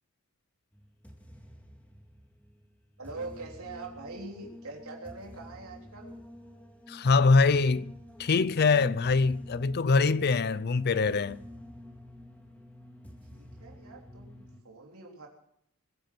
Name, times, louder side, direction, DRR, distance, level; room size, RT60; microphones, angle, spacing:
sound 1, 0.7-14.6, left 1 dB, 5° left, 2.0 m, -49 dB
voice 1, 3.0-6.2 13.3-15.3, right 3 dB, 80° right, 3.5 m, -43 dB
voice 2, 6.9-7.9 8.2-11.4, left 4 dB, 45° left, 0.5 m, -23 dB
21.0 x 10.5 x 6.1 m
head